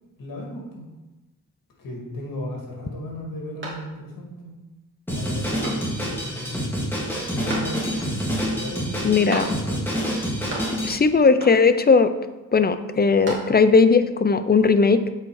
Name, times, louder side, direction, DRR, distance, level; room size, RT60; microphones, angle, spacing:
voice 1, 0.2-0.8 1.8-4.5 5.1-6.5 7.3-8.1 8.5-9.3 9.7-9.8, left 1 dB, 80° left, -1 dB, 2.1 m, -35 dB
sound 1, 3.6-4.3 4.7-4.8 5.6-6.2 7.5-8.1 9.3-9.9 10.2-11.0 11.4-11.9 12.9-13.8, right 2 dB, 35° right, 2.5 m, -35 dB
Drum kit, 5.1-11.0, equal, 5° left, 2.2 m, -27 dB
voice 2, 9.0-9.5 10.8-12.1 12.5-15.0, left 4 dB, 30° left, 11 dB, 0.5 m, -17 dB
7.8 x 4.6 x 4.7 m, 1.1 s
cardioid pair, 85°, 33 cm